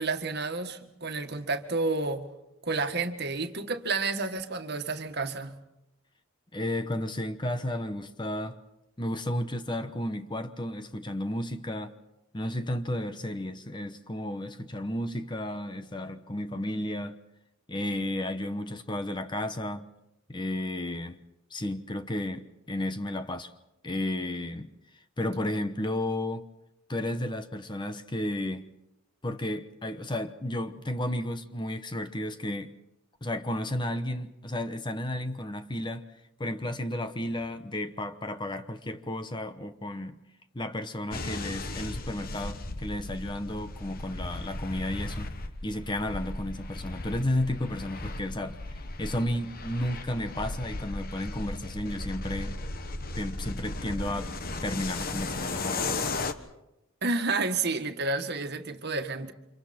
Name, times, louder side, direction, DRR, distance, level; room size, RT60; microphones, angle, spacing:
voice 1, 0.0-2.3 2.6-5.6 57.0-59.3, right 3 dB, 50° right, 1.8 m, -30 dB
voice 2, 6.5-8.6 9.0-11.9 12.3-17.2 17.7-19.9 20.3-21.2 21.5-23.5 23.8-24.7 25.2-26.4 26.9-28.7 29.2-32.7 33.2-36.0 36.4-40.2 40.5-45.3 45.6-52.6 53.1-54.3 54.6-56.3, left 1 dB, 20° left, 1.0 m, -33 dB
sound 1, 41.1-56.3, left 2 dB, 45° left, 1.3 m, -36 dB
30.0 x 26.5 x 4.4 m
head